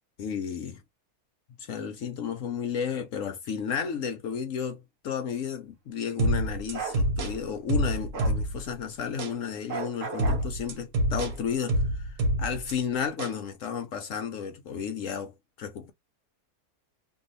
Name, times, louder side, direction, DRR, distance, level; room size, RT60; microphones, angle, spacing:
voice 1, 0.2-0.8 1.6-15.9, left 7 dB, 65° left, 0.9 m, -33 dB
sound 1, 6.2-8.7 9.2-9.4 10.2-12.7 13.2-13.4, right 1 dB, 80° right, 1.3 m, -27 dB
Bark, 6.7-7.0 8.1-8.4 9.7-10.5, right 6 dB, 55° right, 1.2 m, -34 dB
2.6 x 2.6 x 3.0 m
omnidirectional pair, 1.6 m